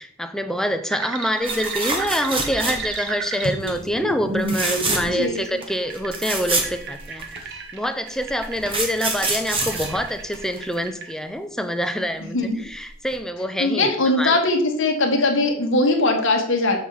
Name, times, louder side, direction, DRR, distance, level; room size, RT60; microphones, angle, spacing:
voice 1, 0.0-7.4 7.7-13.9 14.2-14.4, equal, ahead, 7 dB, 0.5 m, -26 dB
sound 1, 0.9-11.1, right 2 dB, 55° right, 0.9 m, -32 dB
sound 2, 1.4-3.1 3.4-3.8 4.4-5.2 5.6-5.7 5.9-7.4 8.2-10.7 12.6-12.8 13.1-13.2, right 2 dB, 25° right, 1.4 m, -26 dB
voice 2, 5.0-5.4 12.3-12.7 13.6-16.8, left 2 dB, 60° left, 3 dB, 1.3 m, -20 dB
7.3 x 5.8 x 4.6 m, 0.70 s
head